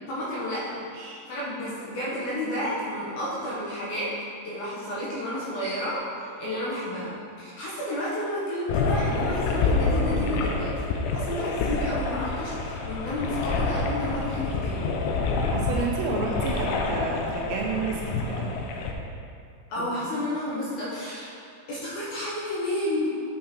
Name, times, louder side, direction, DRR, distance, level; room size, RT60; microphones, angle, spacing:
voice 1, 0.1-0.8 1.3-4.1 4.4-6.0 6.4-7.1 7.4-14.9 19.7-21.3 21.7-23.1, left 1 dB, 65° left, -7 dB, 2.6 m, -31 dB
sound 1, 8.7-18.9, left 3 dB, 80° left, 2.5 m, -27 dB
voice 2, 15.5-18.5 19.8-19.9, right 4 dB, 80° right, -1 dB, 2.7 m, -31 dB
8.4 x 5.7 x 4.4 m, 2.3 s
omnidirectional pair, 5.4 m